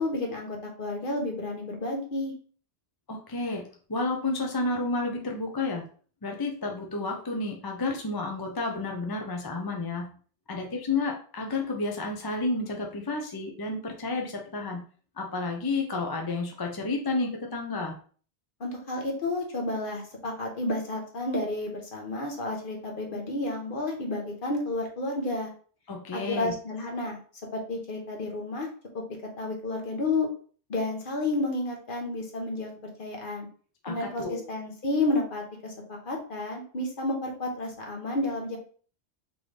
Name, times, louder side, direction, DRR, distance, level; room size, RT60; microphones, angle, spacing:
voice 1, 0.0-2.3 18.6-25.5 26.1-27.2 27.5-28.7 28.9-29.0 29.4-30.3 30.7-33.5 33.9-38.6, left 2 dB, 55° left, 1 dB, 1.2 m, -31 dB
voice 2, 3.1-5.9 6.2-10.2 10.5-14.8 15.2-18.0 25.9-26.5 33.8-34.5, left 3 dB, 25° left, 1 dB, 0.6 m, -31 dB
3.8 x 3.7 x 3.3 m, 0.42 s
omnidirectional pair, 1.1 m